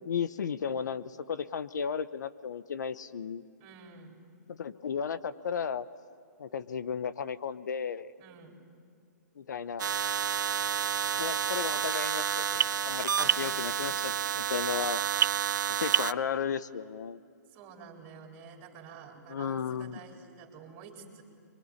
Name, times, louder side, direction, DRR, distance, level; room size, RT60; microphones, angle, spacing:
voice 1, 0.0-3.4 4.5-5.8 6.4-8.1 9.4-9.8 11.2-15.0 15.7-17.2 19.3-20.0, left 7 dB, 75° left, 14 dB, 1.0 m, -34 dB
voice 2, 3.6-4.2 8.2-8.6 13.2-13.7 17.5-21.2, right 5 dB, 25° right, 2 dB, 3.9 m, -50 dB
sound 1, 9.8-16.1, right 8 dB, 85° right, 0.6 m, -29 dB
24.0 x 23.5 x 9.9 m, 2.2 s
hypercardioid pair, 160°, 10 cm